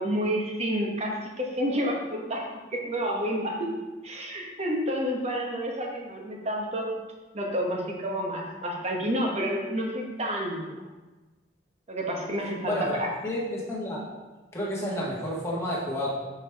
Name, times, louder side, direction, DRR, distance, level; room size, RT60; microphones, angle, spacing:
voice 1, 0.0-3.6 4.0-6.9 7.3-10.7 11.9-13.1, equal, 35° right, -1 dB, 1.1 m, -29 dB
voice 2, 12.7-14.0 14.5-16.1, equal, 15° left, -6 dB, 1.5 m, -30 dB
6.2 x 4.8 x 3.5 m, 1.2 s
head